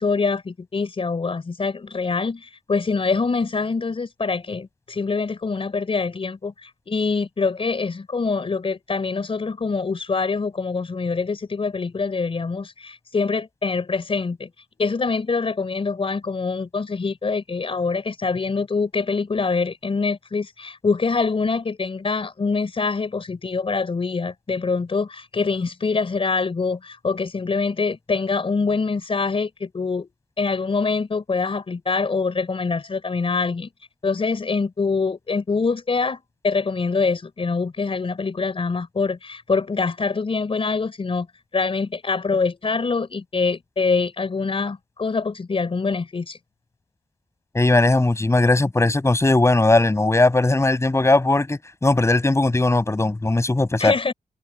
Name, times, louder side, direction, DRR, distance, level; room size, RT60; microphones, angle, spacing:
voice 1, 0.0-14.5 14.8-30.1 30.4-33.7 34.0-41.3 41.5-46.4 53.8-54.1, left 4 dB, 40° left, 4.8 m, -24 dB
voice 2, 47.5-53.9, left 2 dB, 20° left, 6.7 m, -18 dB
wide cardioid pair, 125°, 14 cm